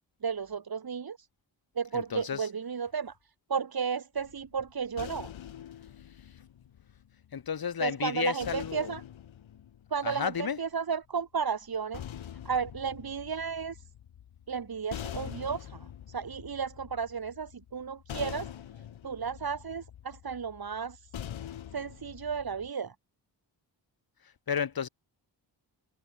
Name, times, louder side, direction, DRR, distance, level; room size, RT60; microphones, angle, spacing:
voice 1, 0.2-1.3 1.8-3.2 3.5-5.3 7.8-9.0 9.9-12.0 12.5-13.8 14.5-18.5 19.0-21.1 21.7-22.9, right 6 dB, 50° right, 2.1 m, -33 dB
voice 2, 1.9-2.5 7.3-8.9 10.0-10.6 24.5-24.9, left 7 dB, 50° left, 1.3 m, -32 dB
sound 1, 4.2-7.5 8.4-10.7 11.6-22.7, left 10 dB, 90° left, 1.5 m, -45 dB
wide cardioid pair, 85°, 45 cm